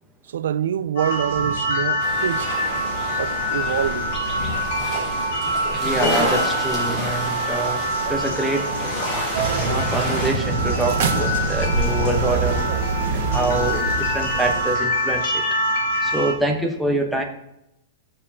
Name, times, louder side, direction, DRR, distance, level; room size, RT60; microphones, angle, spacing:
voice 1, 0.3-2.6 3.1-4.2 4.8-5.0 5.4-5.5 11.1-11.7, right 9 dB, 90° right, 0.4 m, -26 dB
sound 1, 1.0-16.3, equal, 65° left, 2.6 m, -25 dB
sound 2, 2.0-10.3, equal, 15° left, 3.1 m, -29 dB
voice 2, 5.7-7.8 8.1-8.7 9.5-12.6 13.1-15.4 16.0-17.2, right 1 dB, ahead, 0.9 m, -25 dB
sound 3, 9.3-14.7, right 4 dB, 55° right, 1.4 m, -24 dB
13.5 x 7.0 x 2.8 m
supercardioid pair, 170°, 0 cm